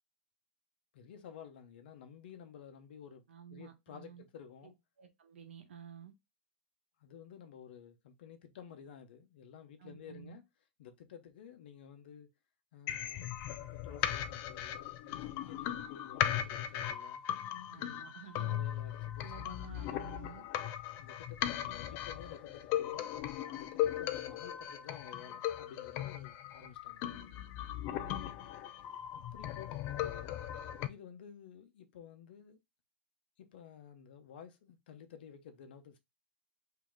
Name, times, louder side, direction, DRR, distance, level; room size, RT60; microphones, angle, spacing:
voice 1, 0.9-3.2 3.5-4.8 7.0-10.4 10.8-12.3 12.7-13.4 13.7-17.2 17.8-18.1 18.4-20.1 21.0-23.1 23.5-27.0 29.1-30.4 30.9-32.6 33.4-36.0, left 8 dB, 60° left, 0.8 m, -53 dB
voice 2, 3.3-4.2 5.0-6.1 9.8-10.4 17.7-18.6 19.2-20.5 27.9-28.2, right 8 dB, 85° right, 1.0 m, -52 dB
sound 1, 12.9-30.9, left 11 dB, 35° left, 0.4 m, -38 dB
3.1 x 2.8 x 3.6 m
hypercardioid pair, 145°, 6 cm